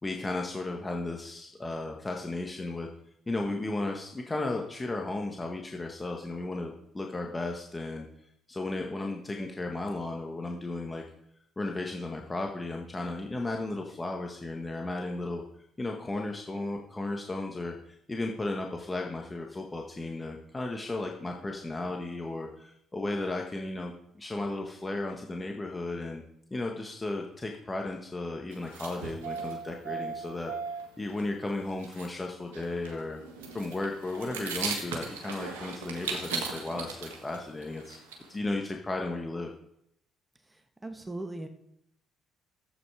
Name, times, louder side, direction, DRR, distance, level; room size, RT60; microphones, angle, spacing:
voice 1, 0.0-2.9 3.3-8.1 8.5-11.0 11.6-15.4 15.8-26.2 26.5-30.5 31.0-33.2 33.5-38.0 38.3-39.5, left 2 dB, 25° left, 2 dB, 1.5 m, -34 dB
sound 1, 28.5-30.9 31.2-31.3 31.5-31.6 31.8-32.1 32.4-38.4, right 5 dB, 85° right, 1.6 m, -38 dB
voice 2, 40.5-41.5, right 2 dB, 15° right, 6 dB, 1.5 m, -39 dB
11.0 x 8.2 x 4.9 m, 0.75 s
hypercardioid pair, 50°, 0 cm